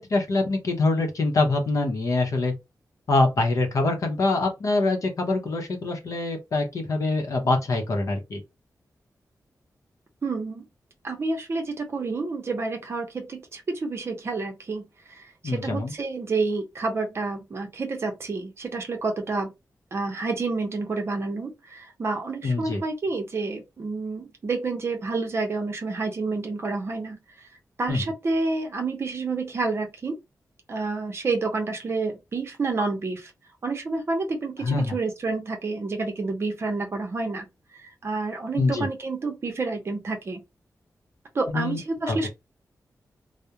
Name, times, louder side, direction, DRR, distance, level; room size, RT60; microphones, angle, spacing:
voice 1, 0.1-2.5 3.1-8.4 15.4-15.9 22.4-22.8 27.9-28.0 34.6-34.9 38.5-38.9 41.5-41.8 42.1-42.3, left 2 dB, 60° left, 0.7 m, -24 dB
voice 2, 10.2-10.6 11.0-14.8 15.4-19.5 19.9-27.2 27.8-30.1 30.7-33.3 33.6-37.5 38.0-40.4 41.3-42.3, right 3 dB, 40° right, 0.7 m, -29 dB
2.3 x 2.0 x 2.8 m
wide cardioid pair, 175°, 6 cm